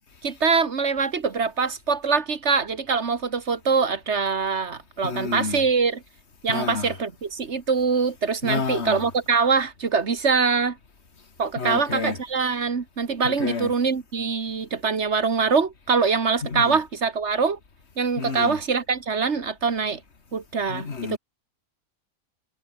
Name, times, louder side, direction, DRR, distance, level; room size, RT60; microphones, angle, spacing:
voice 1, 0.2-6.0 6.4-10.8 11.4-17.6 18.0-20.0 20.3-21.2, right 5 dB, 50° right, 1.8 m, -24 dB
voice 2, 5.0-5.7 6.5-6.9 8.4-9.1 11.6-12.2 13.2-13.7 16.4-16.8 18.2-18.6 20.7-21.2, left 4 dB, 45° left, 2.4 m, -29 dB
omnidirectional pair, 1.5 m